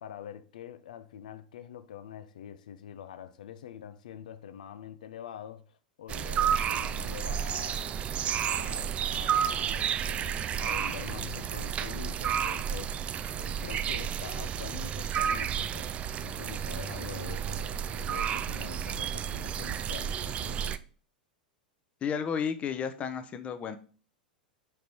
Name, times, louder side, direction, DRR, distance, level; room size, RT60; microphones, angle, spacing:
voice 1, 0.0-8.0 8.5-13.0 13.3-15.9 16.2-20.8, left 9 dB, 60° left, 0.6 m, -45 dB
sound 1, 6.1-20.8, right 8 dB, 25° right, 0.4 m, -31 dB
voice 2, 22.0-23.8, left 7 dB, 25° left, 0.8 m, -32 dB
5.2 x 4.7 x 4.5 m
figure-of-eight pair, 90°, 5 cm